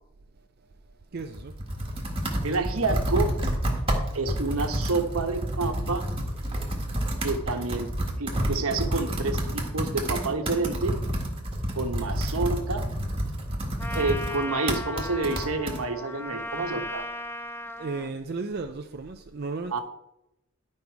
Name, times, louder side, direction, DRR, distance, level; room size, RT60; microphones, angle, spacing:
voice 1, 1.1-1.5 17.8-19.8, right 3 dB, 45° right, 0.5 m, -34 dB
Computer keyboard, 1.2-15.8, right 1 dB, 25° right, 1.7 m, -29 dB
voice 2, 2.4-3.3 4.1-6.1 7.2-7.9 8.2-11.0 11.7-12.9 13.9-17.0 19.7-19.8, right 3 dB, 75° right, 1.2 m, -28 dB
Trumpet, 13.8-18.1, left 1 dB, 10° left, 0.3 m, -36 dB
11.5 x 5.4 x 4.6 m
head